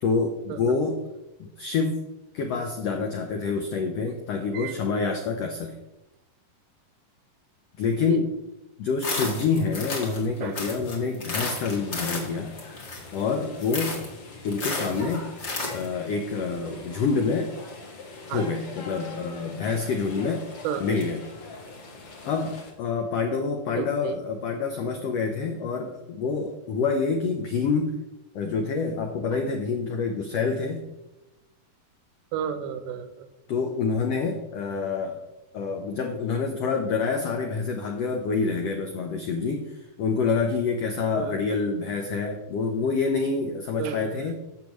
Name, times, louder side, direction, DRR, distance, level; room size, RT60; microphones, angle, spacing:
voice 1, 0.0-1.0 1.4-2.0 2.3-5.7 7.8-8.3 8.8-12.5 13.1-14.0 14.4-15.3 15.7-17.5 18.3-20.4 20.8-21.2 22.2-27.9 28.3-30.8 33.5-35.2 35.5-44.3, left 4 dB, 85° left, 4 dB, 1.4 m, -27 dB
sound 1, 9.0-10.3 10.5-13.2 13.6-14.1 14.5-15.9, left 3 dB, 35° left, 2.0 m, -32 dB
sound 2, 11.5-22.7, left 3 dB, 50° left, 2.2 m, -43 dB
voice 2, 20.6-21.0 23.7-24.2 32.3-33.3 41.2-41.5 43.8-44.2, right 8 dB, 85° right, 10 dB, 2.3 m, -32 dB
11.5 x 7.5 x 3.1 m, 0.97 s
omnidirectional pair, 3.9 m